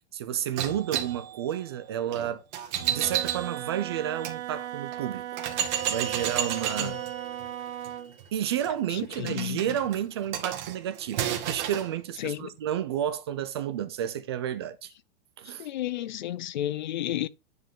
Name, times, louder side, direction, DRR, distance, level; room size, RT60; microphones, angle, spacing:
voice 1, 0.1-2.4 2.9-5.2 5.5-7.0 8.3-14.9 15.4-15.7, right 10 dB, 25° right, 0.4 m, -31 dB
sound 1, 0.6-4.4 4.9-5.0 5.4-11.9, right 10 dB, 40° right, 2.0 m, -33 dB
Wind instrument woodwind instrument, 2.7-8.2, right 11 dB, 90° right, 0.9 m, -37 dB
voice 2, 8.9-9.6 12.2-12.5 15.4-17.3, left 13 dB, 45° left, 0.4 m, -32 dB
10.0 x 5.1 x 3.7 m
supercardioid pair, 175°, 34 cm